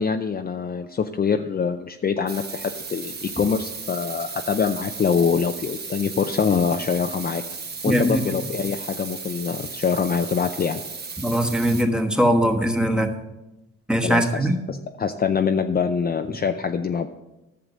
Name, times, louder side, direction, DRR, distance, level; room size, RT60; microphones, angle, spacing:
voice 1, 0.0-7.4 7.8-10.8 14.0-17.1, left 6 dB, 30° left, 6 dB, 0.5 m, -24 dB
sound 1, 2.3-11.8, right 4 dB, 35° right, 1.2 m, -35 dB
voice 2, 7.8-8.4 11.2-13.1 13.9-14.6, equal, 5° right, 3 dB, 1.2 m, -21 dB
11.0 x 6.9 x 5.0 m, 1.0 s
cardioid pair, 90°, 30 cm